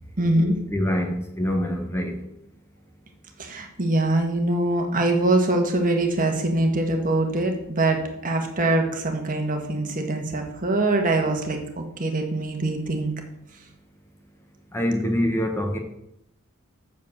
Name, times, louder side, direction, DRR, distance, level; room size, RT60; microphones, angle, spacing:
voice 1, 0.2-0.6 3.4-13.1, right 2 dB, 40° right, 4 dB, 1.5 m, -23 dB
voice 2, 0.7-2.2 14.7-15.8, equal, 10° left, 3 dB, 1.1 m, -25 dB
7.5 x 7.2 x 7.2 m, 0.80 s
head